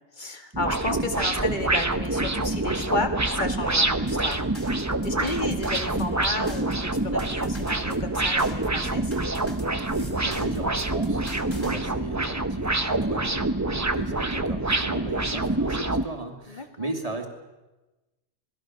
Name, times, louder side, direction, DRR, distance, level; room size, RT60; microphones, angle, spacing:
voice 1, 0.1-4.7 5.0-9.1 14.3-14.4 16.5-16.9, left 2 dB, 45° left, 6 dB, 2.2 m, -32 dB
sound 1, 0.5-16.0, right 2 dB, 15° right, 0.8 m, -26 dB
sound 2, 4.1-11.8, equal, 10° left, 3.0 m, -43 dB
voice 2, 9.9-17.3, right 2 dB, 35° right, 3 dB, 2.9 m, -36 dB
27.5 x 19.5 x 6.4 m, 1.1 s
omnidirectional pair, 1.1 m